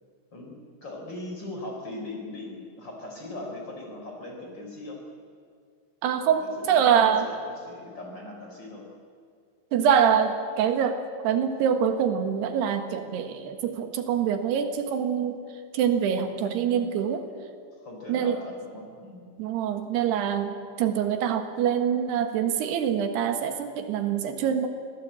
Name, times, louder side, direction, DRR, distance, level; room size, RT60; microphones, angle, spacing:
voice 1, 0.3-5.0 6.2-8.9 16.3-16.9 17.7-19.3, left 2 dB, 25° left, 1 dB, 4.5 m, -40 dB
voice 2, 6.0-7.3 9.7-15.4 15.7-17.2 18.1-18.4 19.4-24.7, right 8 dB, 85° right, 7 dB, 3.6 m, -25 dB
25.0 x 17.0 x 8.6 m, 2.1 s
omnidirectional pair, 4.6 m